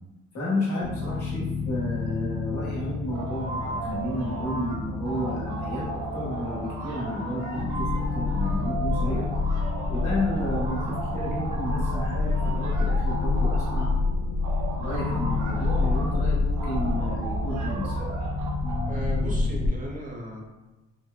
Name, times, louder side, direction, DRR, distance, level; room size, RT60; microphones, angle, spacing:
voice 1, 0.3-9.2 9.9-13.9 14.8-17.9, left 1 dB, 70° left, -6 dB, 1.2 m, -32 dB
sound 1, 0.8-19.7, left 3 dB, 45° left, 0.5 m, -28 dB
sound 2, 3.1-4.8 5.0-14.0 14.4-16.2 16.6-18.9, right 3 dB, 75° right, 0.6 m, -36 dB
voice 2, 18.9-20.4, equal, 30° right, -2 dB, 0.7 m, -36 dB
3.2 x 2.1 x 2.3 m, 1.1 s
cardioid pair, 90°, 30 cm